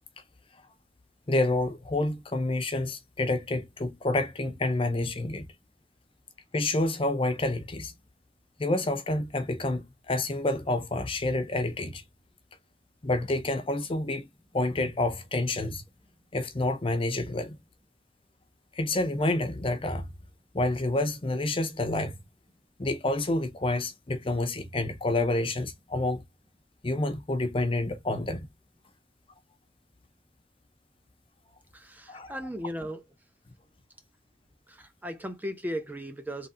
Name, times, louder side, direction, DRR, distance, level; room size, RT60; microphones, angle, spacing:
voice 1, 1.3-5.5 6.5-7.9 8.6-12.0 13.0-14.3 14.5-15.8 16.3-17.6 18.7-20.1 20.5-22.2 22.8-26.2 26.8-28.5 32.1-32.4, left 2 dB, 30° left, 0.7 m, -28 dB
voice 2, 31.7-33.0 34.7-36.5, equal, 10° right, 0.6 m, -36 dB
3.8 x 3.1 x 4.3 m
head